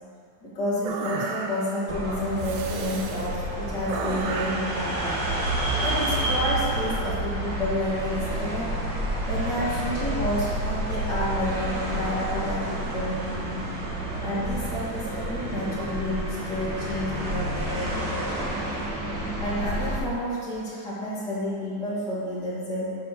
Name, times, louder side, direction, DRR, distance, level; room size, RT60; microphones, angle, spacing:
voice 1, 0.4-5.3 5.8-8.7 9.3-13.7 14.2-18.5 19.4-23.0, left 1 dB, 40° left, -8 dB, 1.8 m, -30 dB
sound 1, 0.8-1.8 2.4-3.3 3.9-4.7, right 4 dB, 80° right, 1.4 m, -33 dB
sound 2, 1.9-20.0, right 1 dB, 45° right, 1.6 m, -29 dB
9.3 x 4.2 x 5.9 m, 2.4 s
omnidirectional pair, 3.7 m